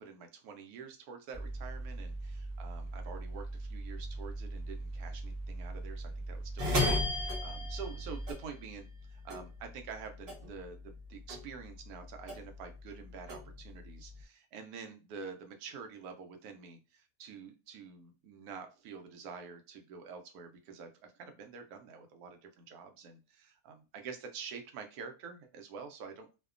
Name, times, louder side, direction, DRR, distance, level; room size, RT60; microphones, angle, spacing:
voice 1, 0.0-26.3, right 5 dB, 80° right, 5 dB, 1.1 m, -47 dB
Mechanical fan, 1.3-8.3, right 2 dB, 15° right, 0.8 m, -41 dB
sound 1, 6.6-9.0 9.3-11.0 11.3-12.7 13.1-14.2, left 2 dB, 55° right, 0.8 m, -34 dB
2.7 x 2.1 x 2.4 m, 0.31 s
omnidirectional pair, 1.6 m